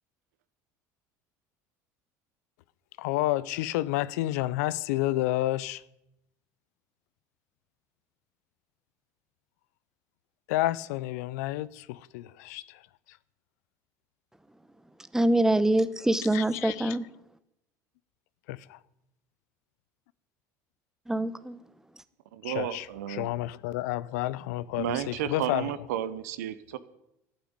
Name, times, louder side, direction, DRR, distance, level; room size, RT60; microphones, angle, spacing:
voice 1, 3.0-5.8 10.5-12.8 16.3-17.0 18.5-18.8 22.4-25.7, left 16 dB, 80° left, 0.5 m, -30 dB
voice 2, 15.1-17.1 21.1-21.6, right 1 dB, 5° right, 1.0 m, -24 dB
voice 3, 22.3-23.3 24.8-26.8, right 11 dB, 85° right, 0.9 m, -32 dB
11.5 x 9.3 x 8.8 m
hypercardioid pair, 85°, 9 cm